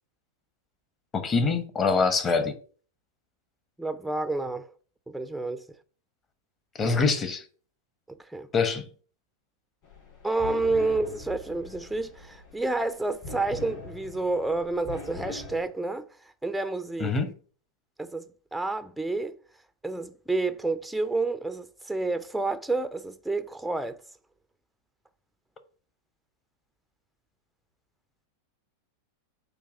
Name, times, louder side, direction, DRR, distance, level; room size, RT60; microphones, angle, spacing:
voice 1, 1.1-2.6 6.8-7.4 8.5-8.8 17.0-17.3, left 4 dB, 25° left, 1.1 m, -24 dB
voice 2, 3.8-4.7 5.1-5.6 8.1-8.5 10.2-16.1 16.4-17.1 18.0-19.3 19.8-24.0, right 3 dB, ahead, 0.5 m, -29 dB
sound 1, 9.8-15.6, left 2 dB, 40° left, 3.5 m, -42 dB
8.7 x 2.9 x 6.3 m
figure-of-eight pair, 90°, 0 cm